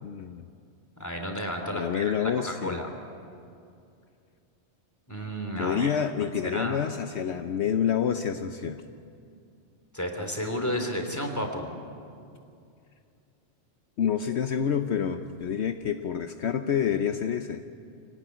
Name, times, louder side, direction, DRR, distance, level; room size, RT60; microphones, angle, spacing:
voice 1, 0.0-0.5 1.7-2.8 5.6-8.8 14.0-17.6, left 8 dB, 70° left, 7 dB, 1.1 m, -28 dB
voice 2, 1.0-2.0 2.3-2.9 5.1-6.8 9.9-11.7, equal, 15° left, 3 dB, 3.2 m, -32 dB
25.5 x 18.0 x 9.2 m, 2.4 s
omnidirectional pair, 1.2 m